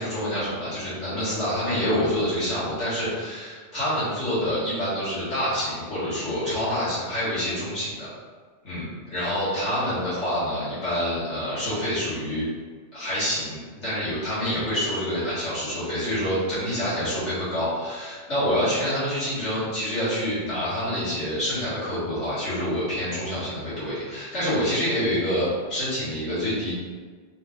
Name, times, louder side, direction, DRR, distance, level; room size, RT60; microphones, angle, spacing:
voice 1, 0.0-8.1 8.6-12.4 12.9-26.7, equal, 75° left, -13 dB, 2.1 m, -27 dB
4.0 x 2.5 x 3.5 m, 1.5 s
omnidirectional pair, 1.2 m